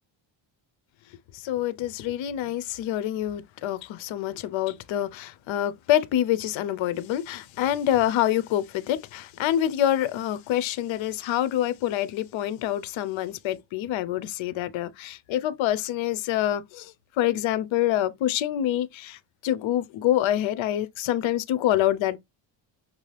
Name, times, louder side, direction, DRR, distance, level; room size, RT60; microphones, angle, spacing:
voice 1, 1.3-22.2, left 12 dB, 75° left, 0.7 m, -26 dB
6.0 x 2.7 x 3.2 m
cardioid pair, 145°, 47 cm